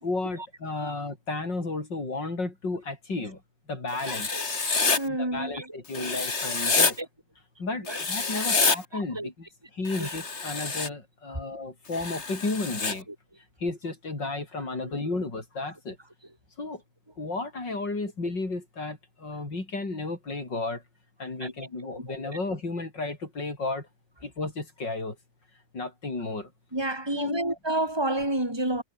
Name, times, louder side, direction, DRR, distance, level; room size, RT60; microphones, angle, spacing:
voice 1, 0.0-3.4 3.7-4.3 5.1-7.0 7.6-9.5 9.7-13.1 13.6-16.0 16.6-16.8 17.2-20.8 21.2-23.9 24.2-25.2 25.7-26.5 27.1-27.4, left 3 dB, 80° left, 6.1 m, -33 dB
Writing, 4.0-5.0 5.9-6.9 7.9-8.8 9.9-10.9 11.9-12.9, left 4 dB, 40° left, 2.5 m, -27 dB
voice 2, 4.1-4.5 5.0-6.1 6.6-6.8 7.9-8.0 8.3-8.4 8.9-9.3 10.0-10.2 21.4-21.5 22.1-22.2 26.7-28.8, right 1 dB, 15° right, 5.5 m, -30 dB
omnidirectional pair, 1.9 m